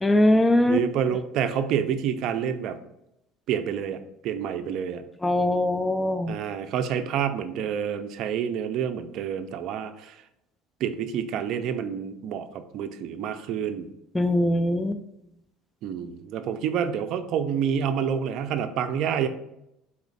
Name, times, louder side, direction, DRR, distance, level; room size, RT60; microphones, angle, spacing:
voice 1, 0.0-0.9 1.1-1.2 5.2-6.4 14.1-15.0, left 1 dB, 10° left, 9 dB, 0.3 m, -22 dB
voice 2, 0.7-2.8 3.5-5.0 6.3-10.1 10.8-13.9 15.8-19.3, right 8 dB, 55° right, 9 dB, 0.4 m, -28 dB
4.1 x 3.0 x 4.1 m, 0.83 s
cardioid pair, 140°, 0 cm